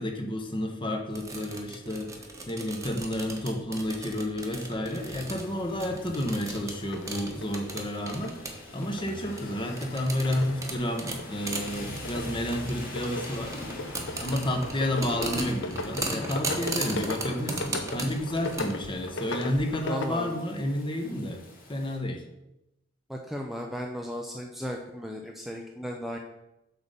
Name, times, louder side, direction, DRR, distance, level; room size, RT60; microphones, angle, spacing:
voice 1, 0.0-8.4 8.7-13.5 14.1-21.4 21.7-22.2, left 1 dB, 25° left, 3 dB, 1.1 m, -31 dB
sound 1, 1.1-18.6, right 2 dB, 15° right, 1.1 m, -37 dB
Rain, 4.9-22.0, left 2 dB, 50° left, 2.2 m, -45 dB
sound 2, 6.8-20.1, left 2 dB, 65° left, 0.9 m, -39 dB
voice 2, 19.9-20.4 23.1-26.2, equal, ahead, 1 dB, 0.5 m, -35 dB
8.0 x 3.8 x 6.7 m, 0.91 s
head